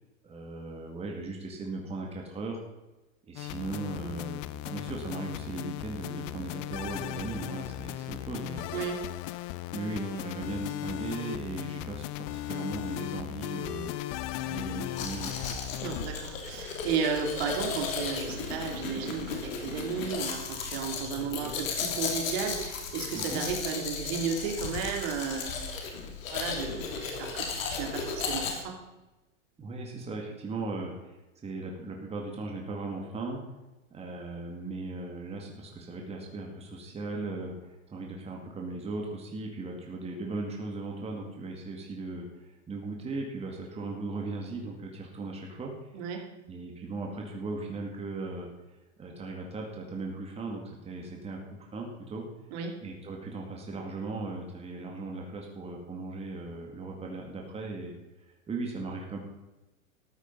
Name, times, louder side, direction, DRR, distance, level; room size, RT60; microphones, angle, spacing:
voice 1, 0.2-2.6 3.3-8.7 9.7-13.9 14.4-15.3 23.2-23.4 29.6-31.2 31.4-33.4 33.9-45.7 46.5-48.5 49.0-52.2 52.8-57.9 58.5-59.2, right 3 dB, 15° right, 0 dB, 2.1 m, -37 dB
sound 1, 3.4-16.1, left 15 dB, 35° left, 0.6 m, -37 dB
voice 2, 8.7-9.0 15.8-25.7 26.3-28.8 45.9-46.3 52.5-52.8, right 6 dB, 55° right, 3 dB, 2.8 m, -34 dB
Domestic sounds home sounds, 15.0-28.5, left 5 dB, 75° left, 3.2 m, -35 dB
14.0 x 9.1 x 5.4 m, 1.1 s
hypercardioid pair, 130°, 40 cm